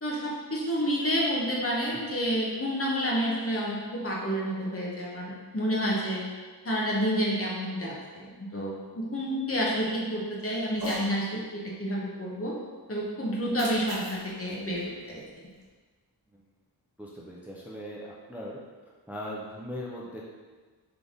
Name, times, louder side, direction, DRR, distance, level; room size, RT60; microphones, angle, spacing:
voice 1, 0.0-6.3 6.6-12.5 12.9-15.2, equal, 35° left, -4 dB, 1.1 m, -29 dB
Cat, 10.7-11.1 13.3-15.7, equal, 65° right, 1.0 m, -41 dB
voice 2, 17.0-18.6 19.1-20.2, equal, 5° right, -5 dB, 0.5 m, -39 dB
3.8 x 3.4 x 3.8 m, 1.4 s
wide cardioid pair, 75°, 39 cm